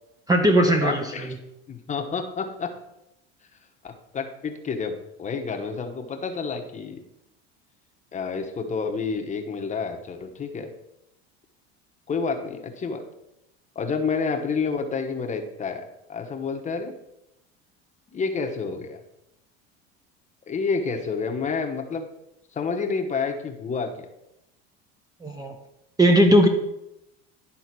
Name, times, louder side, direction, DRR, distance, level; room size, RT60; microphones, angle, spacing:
voice 1, 0.3-1.4 25.2-25.5 26.0-26.5, equal, 10° right, 4 dB, 0.7 m, -18 dB
voice 2, 0.8-1.3 1.7-2.7 3.8-7.0 8.1-10.7 12.1-13.0 13.7-16.9 18.1-19.0 20.5-22.1 22.5-24.1, left 5 dB, 25° left, 4 dB, 1.0 m, -29 dB
11.0 x 3.9 x 6.0 m, 0.87 s
supercardioid pair, 135°, 31 cm